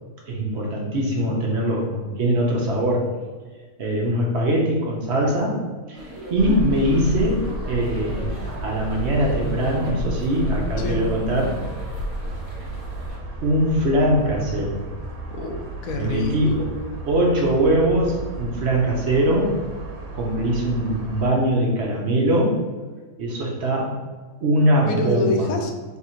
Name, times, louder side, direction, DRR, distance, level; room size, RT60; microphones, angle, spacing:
voice 1, 0.3-3.2 3.8-5.6 5.9-6.0 6.3-8.3 8.6-11.6 13.4-14.8 15.9-16.7 17.0-19.6 20.1-22.6 23.2-23.9 24.4-25.4, right 1 dB, 60° right, -2 dB, 0.9 m, -22 dB
sound 1, 5.9-13.2, equal, 25° right, 1.0 m, -40 dB
sound 2, 6.4-21.3, right 2 dB, 90° right, 1.2 m, -32 dB
voice 2, 15.3-16.3 24.9-26.0, left 2 dB, 80° left, 4 dB, 1.0 m, -27 dB
3.5 x 2.5 x 4.3 m, 1.4 s
omnidirectional pair, 1.5 m